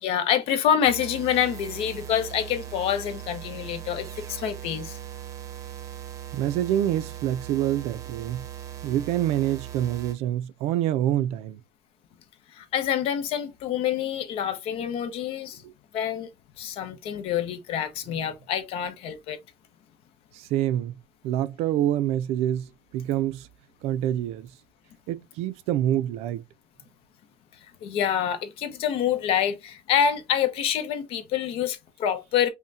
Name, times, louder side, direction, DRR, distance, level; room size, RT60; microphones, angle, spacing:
voice 1, 0.0-5.0 12.5-15.6 15.9-16.3 16.6-19.4 27.8-32.5, left 9 dB, 65° left, 0.7 m, -26 dB
sound 1, 0.8-10.1, right 11 dB, 30° right, 0.7 m, -39 dB
voice 2, 6.3-8.5 8.8-11.6 15.6-15.7 20.3-20.9 21.2-23.5 23.8-24.5 25.1-26.4, right 12 dB, 75° right, 0.4 m, -26 dB
5.5 x 2.2 x 2.7 m
cardioid pair, 165°, 11 cm